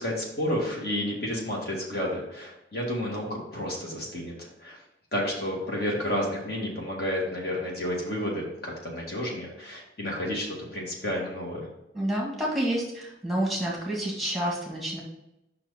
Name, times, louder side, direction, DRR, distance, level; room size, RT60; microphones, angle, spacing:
voice 1, 0.0-4.8 5.1-11.7, equal, 55° left, -2 dB, 1.9 m, -31 dB
voice 2, 11.9-15.0, right 1 dB, ahead, -4 dB, 1.8 m, -29 dB
5.7 x 4.5 x 5.5 m, 0.88 s
head